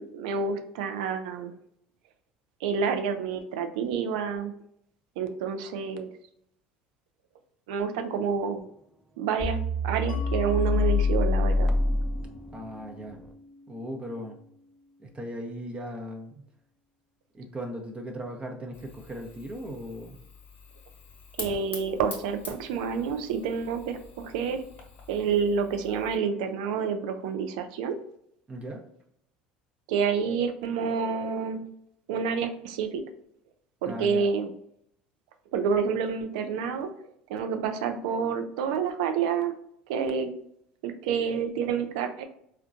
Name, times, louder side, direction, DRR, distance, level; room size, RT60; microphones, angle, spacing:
voice 1, 0.0-1.5 2.6-4.5 5.2-6.1 7.7-8.6 9.2-9.6 9.8-11.7 21.4-24.6 25.1-28.0 29.9-31.6 32.1-33.0 33.8-34.5 35.5-36.9 37.3-39.5 39.9-40.3 40.8-42.2, right 6 dB, 75° right, 7 dB, 0.4 m, -28 dB
sound 1, 9.4-12.6, left 2 dB, 5° right, 0.3 m, -25 dB
Mallet percussion, 10.1-15.5, left 2 dB, 80° left, 0.5 m, -46 dB
voice 2, 12.5-13.2 13.7-14.4 15.0-16.4 17.3-20.2 28.5-28.8 33.8-34.3, equal, 30° right, 3 dB, 0.7 m, -38 dB
Fire, 18.7-26.2, left 4 dB, 45° left, 1.0 m, -46 dB
3.7 x 2.2 x 2.5 m, 0.72 s
hypercardioid pair, 75°, 4 cm